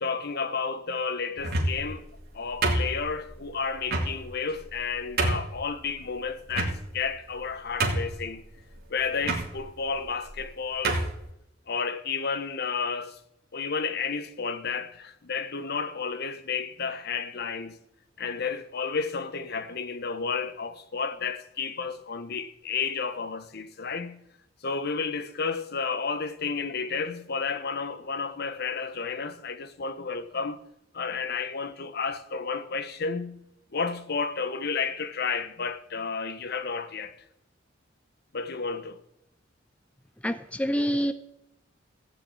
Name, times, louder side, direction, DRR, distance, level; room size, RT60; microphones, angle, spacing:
voice 1, 0.0-2.0 2.3-8.4 8.9-11.0 11.7-13.2 13.5-17.8 18.2-24.2 24.6-30.6 30.9-33.4 33.7-37.1 38.3-39.0, left 5 dB, 55° left, 1.0 m, -31 dB
sound 1, 1.4-1.9 2.6-3.3 3.9-4.1 4.7-4.8 5.2-5.5 6.5-7.1 7.4-7.5 7.8-8.3 9.2-9.4 10.3-10.4 10.8-11.1, right 2 dB, 55° right, 2.5 m, -26 dB
voice 2, 40.2-41.1, equal, 5° left, 0.6 m, -26 dB
15.5 x 6.3 x 8.6 m
head